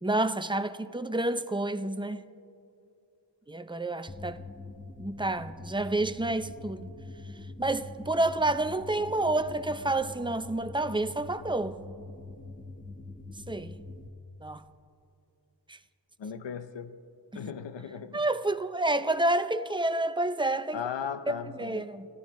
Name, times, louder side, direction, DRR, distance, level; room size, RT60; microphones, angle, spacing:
voice 1, 0.0-2.2 3.5-4.4 5.0-6.9 7.6-11.8 13.5-13.8 14.4-14.6 15.7-15.8 17.3-17.4 18.1-20.8 21.3-22.1, right 2 dB, 10° right, 0.5 m, -29 dB
sound 1, 4.1-14.1, left 3 dB, 20° left, 0.8 m, -44 dB
voice 2, 16.2-17.0 17.3-18.2 20.7-21.9, left 7 dB, 85° left, 0.7 m, -37 dB
28.0 x 14.0 x 3.1 m
wide cardioid pair, 100°, 43 cm